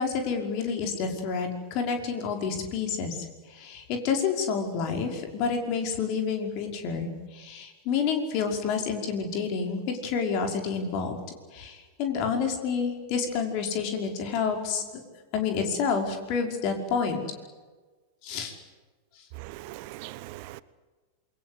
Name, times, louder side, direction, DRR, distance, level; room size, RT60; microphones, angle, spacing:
voice 1, 0.0-11.2 11.5-14.8 15.3-17.2 18.2-18.5, left 5 dB, 45° left, 4 dB, 5.4 m, -29 dB
voice 2, 19.4-20.6, right 18 dB, 45° right, 18 dB, 1.0 m, -41 dB
28.0 x 23.0 x 8.3 m, 1.3 s
figure-of-eight pair, 90°, 0 cm